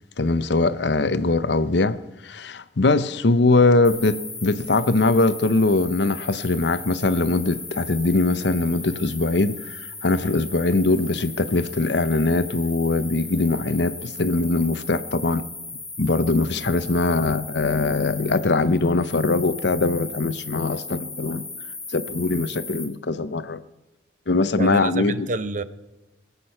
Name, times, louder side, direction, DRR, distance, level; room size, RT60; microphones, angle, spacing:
voice 1, 0.2-2.0 2.2-15.5 16.0-21.5 21.9-23.6 24.3-25.3, left 3 dB, 65° left, 0.7 m, -21 dB
sound 1, 3.8-22.8, left 3 dB, 5° left, 3.3 m, -37 dB
voice 2, 24.6-25.6, right 2 dB, 40° right, 0.7 m, -28 dB
21.5 x 8.3 x 5.6 m
head